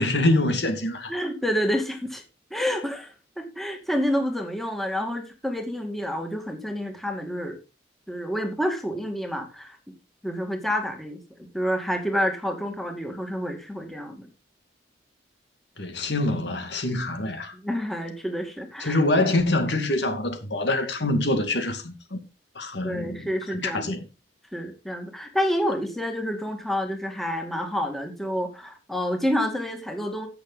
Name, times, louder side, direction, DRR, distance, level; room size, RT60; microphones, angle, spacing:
voice 1, 0.0-1.1 15.8-17.6 18.8-22.2 22.6-24.1, left 2 dB, 70° left, 2.4 m, -25 dB
voice 2, 1.1-2.2 2.5-7.6 8.1-9.8 10.2-11.2 11.5-14.3 17.5-19.0 22.8-23.9 24.5-30.3, equal, ahead, 2.3 m, -28 dB
15.0 x 6.8 x 4.1 m
head